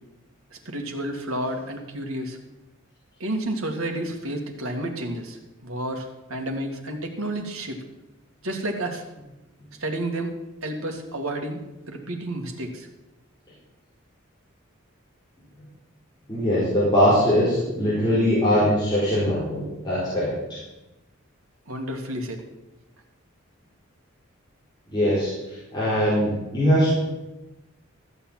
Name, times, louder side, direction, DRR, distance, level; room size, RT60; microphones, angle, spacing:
voice 1, 0.7-2.4 3.2-7.8 8.4-9.0 9.8-10.3 10.6-11.6 11.9-12.9 21.7-22.4, right 1 dB, 85° right, 3 dB, 2.1 m, -30 dB
voice 2, 16.3-20.3 24.9-25.3 25.7-27.0, equal, 20° left, -10 dB, 4.5 m, -21 dB
14.0 x 7.1 x 7.4 m, 0.99 s
head